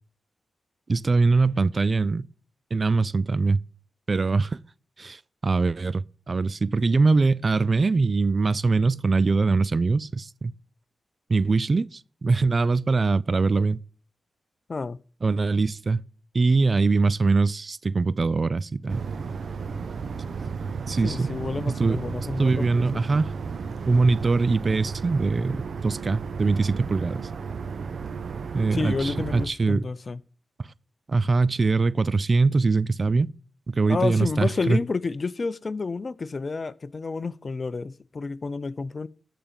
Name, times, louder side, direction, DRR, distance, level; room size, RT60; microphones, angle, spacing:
voice 1, 0.9-2.3 2.7-3.6 4.1-4.6 5.0-10.5 11.3-13.8 15.2-16.0 16.3-19.1 20.9-21.3 21.6-22.0 22.4-23.3 23.9-27.3 28.5-29.9 30.6-30.7 31.1-33.3 33.7-34.8, right 3 dB, 50° right, 0.5 m, -22 dB
sound 1, 18.9-29.5, right 5 dB, 70° right, 0.9 m, -34 dB
voice 2, 21.0-23.0 28.7-30.2 33.9-39.1, left 4 dB, 50° left, 0.6 m, -30 dB
13.5 x 5.1 x 7.4 m
supercardioid pair, 45°, 0 cm